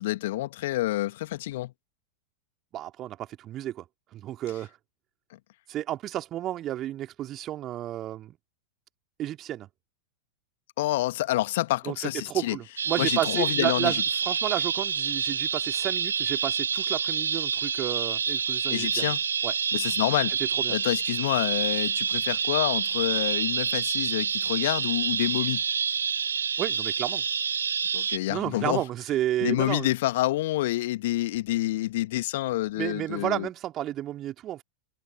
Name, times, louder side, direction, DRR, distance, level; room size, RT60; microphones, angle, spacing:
voice 1, 0.0-1.7 10.8-12.6 13.0-14.0 18.7-19.2 19.7-20.4 20.7-25.6 27.9-28.8 29.4-33.5, left 16 dB, 55° left, 1.9 m, -28 dB
voice 2, 2.7-3.8 4.1-4.7 5.7-8.4 9.2-9.7 11.8-19.1 19.4-19.5 20.6-20.7 26.6-27.2 28.3-29.9 32.8-34.6, right 13 dB, 30° right, 3.0 m, -32 dB
sound 1, 12.8-28.2, right 7 dB, 70° right, 0.9 m, -28 dB
figure-of-eight pair, 90°, 0 cm